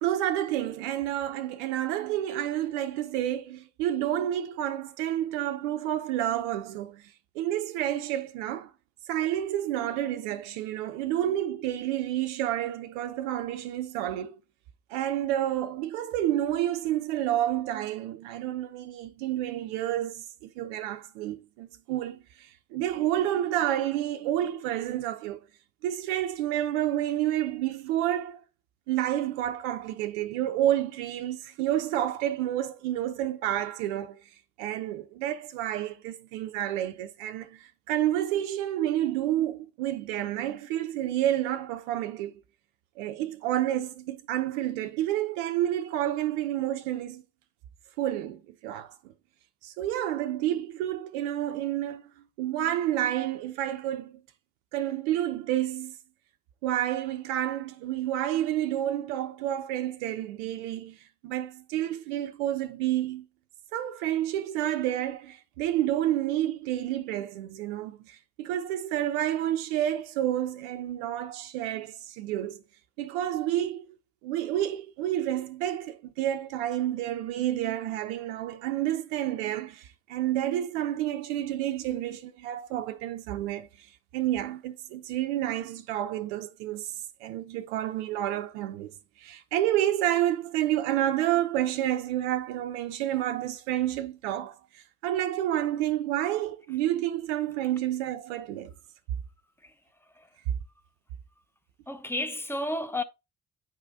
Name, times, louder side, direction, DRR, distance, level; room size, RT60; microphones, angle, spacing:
voice 1, 0.0-8.7 9.1-14.4 14.9-25.4 25.8-28.4 28.9-34.3 34.6-42.3 43.0-47.2 48.0-48.9 49.6-52.1 52.4-54.2 54.7-56.0 56.6-61.0 61.2-63.3 63.7-72.6 73.0-74.0 74.2-83.9 84.1-86.9 87.2-88.9 89.2-98.7, right 12 dB, 70° right, 0.6 m, -29 dB
voice 2, 101.9-103.0, left 1 dB, 5° left, 0.8 m, -32 dB
8.6 x 4.8 x 2.6 m
figure-of-eight pair, 40°, 36 cm